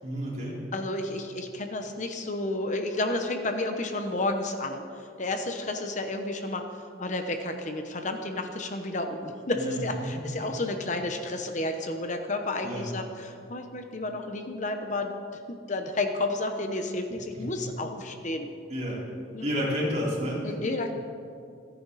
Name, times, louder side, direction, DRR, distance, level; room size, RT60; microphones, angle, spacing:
voice 1, 0.0-0.6 9.5-9.8 10.3-10.5 12.6-12.9 17.3-17.7 18.7-19.0 19.4-20.5, equal, 40° right, -6 dB, 4.6 m, -31 dB
voice 2, 0.7-6.6 7.0-15.1 15.5-18.5 19.3-19.5 20.4-20.9, left 2 dB, 40° left, 5 dB, 1.0 m, -31 dB
28.0 x 10.5 x 4.2 m, 2.5 s
head